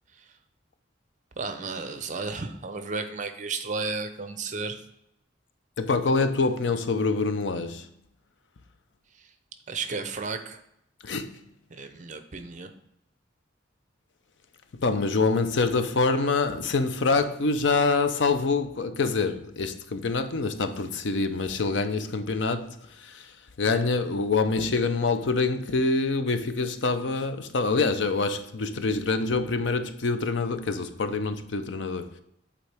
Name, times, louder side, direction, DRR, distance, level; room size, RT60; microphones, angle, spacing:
voice 1, 1.4-4.8 9.7-10.6 11.7-12.7, right 4 dB, 40° right, 0.6 m, -33 dB
voice 2, 5.8-7.9 11.0-11.4 14.8-23.3 23.6-32.1, left 3 dB, 75° left, 0.6 m, -26 dB
8.1 x 4.1 x 3.4 m
head